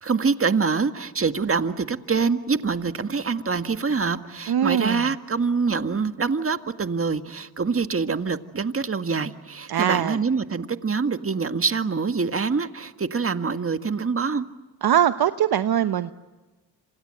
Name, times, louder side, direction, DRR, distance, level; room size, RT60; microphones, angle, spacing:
voice 1, 0.0-14.5, right 5 dB, 30° right, 8 dB, 1.8 m, -25 dB
voice 2, 4.5-5.1 9.7-10.2 14.8-16.1, right 10 dB, 55° right, 10 dB, 1.0 m, -22 dB
28.0 x 27.0 x 7.8 m, 1.2 s
supercardioid pair, 60°, 44 cm